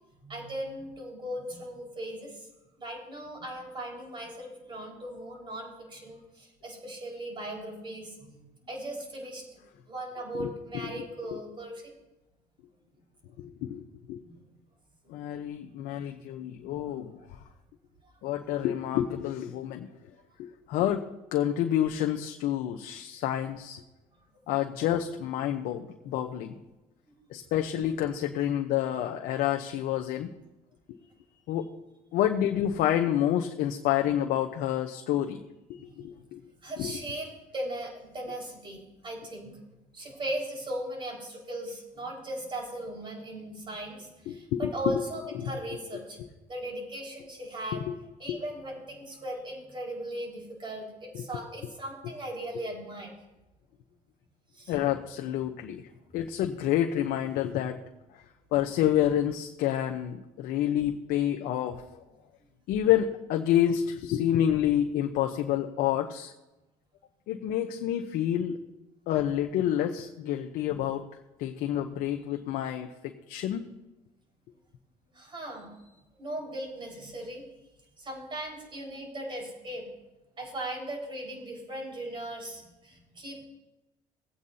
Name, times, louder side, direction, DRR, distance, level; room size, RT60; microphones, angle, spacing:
voice 1, 0.2-2.5 2.8-9.4 9.9-11.9 14.2-14.4 15.0-15.2 35.7-36.1 36.6-39.6 39.9-46.2 46.5-47.8 48.2-53.1 54.5-54.7 75.1-75.7 76.2-77.4 78.0-79.8 80.4-83.4, right 1 dB, 35° right, -1 dB, 4.7 m, -38 dB
voice 2, 13.4-13.8 14.1-14.2 15.1-17.1 18.2-19.9 20.4-21.0 21.3-23.8 24.5-26.6 27.3-30.3 31.5-31.7 32.1-35.4 36.0-36.4 36.8-36.9 44.3-44.7 45.3-45.5 47.7-47.9 48.3-48.4 51.1-51.2 54.7-55.8 56.1-57.8 58.5-62.0 62.7-66.3 67.3-68.6 69.1-71.0 71.4-73.7, left 11 dB, 80° left, 4 dB, 0.8 m, -28 dB
19.0 x 8.5 x 2.7 m, 1.0 s
cardioid pair, 95°, 15 cm